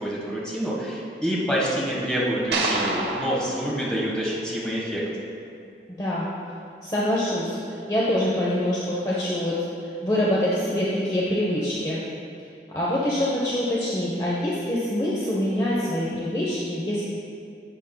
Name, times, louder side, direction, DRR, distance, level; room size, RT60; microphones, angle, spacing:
voice 1, 0.0-5.0, equal, 5° left, -6 dB, 1.4 m, -27 dB
sound 1, 2.5-4.9, right 3 dB, 85° right, 0.9 m, -29 dB
voice 2, 6.8-7.6 7.9-9.6 10.0-12.0 12.7-17.1, left 1 dB, 20° left, -7 dB, 0.8 m, -25 dB
11.0 x 7.2 x 2.2 m, 2.4 s
head